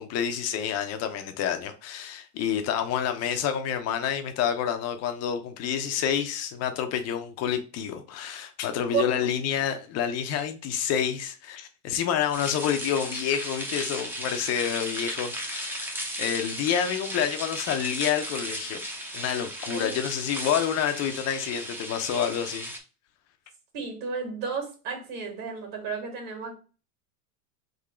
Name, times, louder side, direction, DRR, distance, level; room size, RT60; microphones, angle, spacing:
voice 1, 0.0-18.8 19.1-22.7, left 9 dB, 35° left, 0.7 m, -28 dB
voice 2, 8.9-9.3 19.7-20.0 23.7-26.6, right 6 dB, 45° right, 2.1 m, -32 dB
sound 1, 12.3-22.8, equal, 5° right, 0.7 m, -35 dB
3.8 x 2.9 x 4.2 m
supercardioid pair, 125°, 47 cm